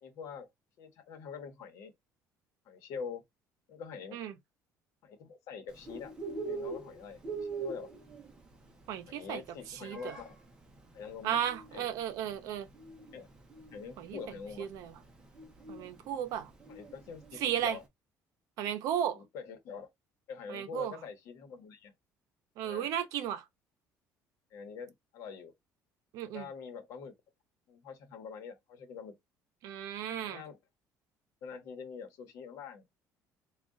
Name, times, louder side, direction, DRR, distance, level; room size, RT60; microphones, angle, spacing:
voice 1, 0.0-0.5 0.8-1.9 2.6-3.2 3.7-4.2 5.0-6.1 6.4-7.9 9.1-10.4 10.9-11.4 11.7-11.9 13.1-13.3 13.7-14.7 16.7-17.8 19.1-19.9 20.3-21.9 22.6-22.9 24.5-25.5 26.2-27.1 27.7-29.2 30.2-30.6 31.4-32.8, left 6 dB, 60° left, 1.0 m, -45 dB
Bird, 5.7-17.8, right 4 dB, 15° right, 0.7 m, -44 dB
voice 2, 8.9-9.4 9.7-10.1 11.2-12.7 14.0-14.2 14.6-14.9 15.7-16.5 17.4-17.8 18.6-19.2 20.5-20.9 22.6-23.4 26.1-26.5 29.6-30.4, right 10 dB, 65° right, 0.7 m, -34 dB
3.7 x 2.4 x 3.7 m
cardioid pair, 180°, 6 cm